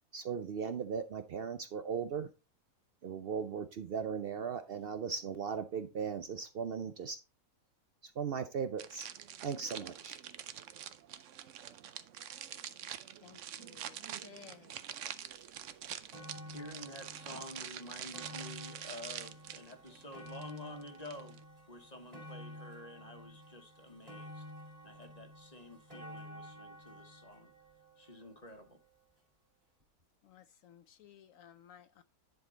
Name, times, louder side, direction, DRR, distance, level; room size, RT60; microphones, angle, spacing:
voice 1, 0.1-2.3 3.0-7.2 8.2-9.1 9.4-10.2, right 6 dB, 80° right, 0.5 m, -37 dB
sound 1, 8.8-21.4, right 10 dB, 60° right, 0.9 m, -46 dB
voice 2, 13.2-14.8 30.2-32.0, left 9 dB, 70° left, 0.9 m, -57 dB
sound 2, 15.4-15.5 15.8-29.0 29.8-29.9, equal, 30° right, 3.1 m, -51 dB
voice 3, 16.5-21.4 21.7-24.4 24.8-27.5 28.0-28.8, left 1 dB, 25° left, 1.3 m, -50 dB
10.5 x 4.8 x 3.9 m
omnidirectional pair, 1.7 m